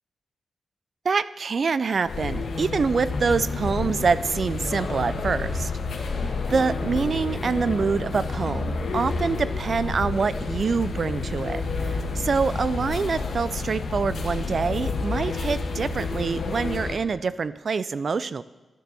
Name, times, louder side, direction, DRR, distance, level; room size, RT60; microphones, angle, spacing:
voice 1, 1.0-5.7 6.0-18.4, right 5 dB, 45° right, 16 dB, 0.4 m, -26 dB
sound 1, 2.1-17.0, left 3 dB, 70° left, 1.6 m, -29 dB
sound 2, 3.1-6.6, left 1 dB, 5° left, 1.6 m, -41 dB
12.0 x 10.5 x 6.8 m, 1.2 s
wide cardioid pair, 145°, 0 cm